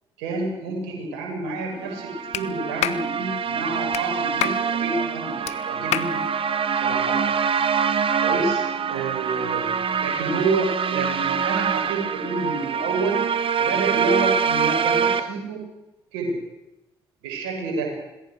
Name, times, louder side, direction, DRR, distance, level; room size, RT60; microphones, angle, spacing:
voice 1, 0.2-6.2 6.8-7.2 8.2-13.2 13.6-15.7 16.1-16.4 17.2-17.9, right 3 dB, 75° right, 1 dB, 7.2 m, -28 dB
sound 1, 1.8-15.2, right 6 dB, 45° right, 1.8 m, -25 dB
Clapping, 2.3-2.5 2.8-3.0 3.9-4.0 4.4-4.6 5.5-5.6 5.9-6.1, left 12 dB, 65° left, 1.2 m, -26 dB
26.5 x 20.5 x 6.5 m, 0.96 s
hypercardioid pair, 45°, 12 cm